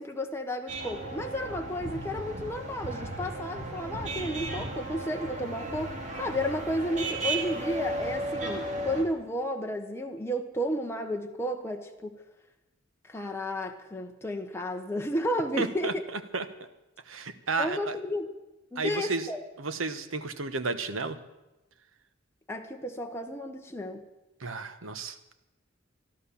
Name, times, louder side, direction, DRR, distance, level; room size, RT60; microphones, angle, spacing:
voice 1, 0.0-5.9 6.2-12.2 13.1-16.0 17.6-18.3 18.7-19.4 22.5-24.0, equal, 10° left, 2 dB, 0.9 m, -32 dB
sound 1, 0.7-9.0, right 2 dB, 40° right, 2.6 m, -35 dB
voice 2, 15.6-15.9 16.3-16.4 17.1-17.9 18.8-19.3 19.6-21.2 24.4-25.2, right 4 dB, 85° right, 11 dB, 1.0 m, -32 dB
13.5 x 12.0 x 7.1 m, 1.0 s
head